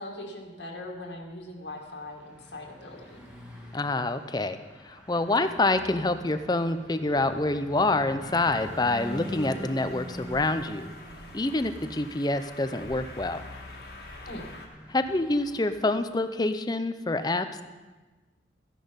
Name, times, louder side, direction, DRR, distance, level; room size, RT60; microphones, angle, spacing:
voice 1, 0.0-3.2 14.3-14.4, left 1 dB, 70° left, 1 dB, 1.9 m, -40 dB
Car passing by / Truck, 1.5-15.9, equal, 5° right, 2.1 m, -44 dB
voice 2, 3.7-10.9 11.3-13.4 14.9-17.6, left 2 dB, 20° left, 10 dB, 0.6 m, -27 dB
Train, 8.2-14.7, left 2 dB, 55° left, 1.7 m, -46 dB
14.0 x 10.5 x 5.2 m, 1.3 s
head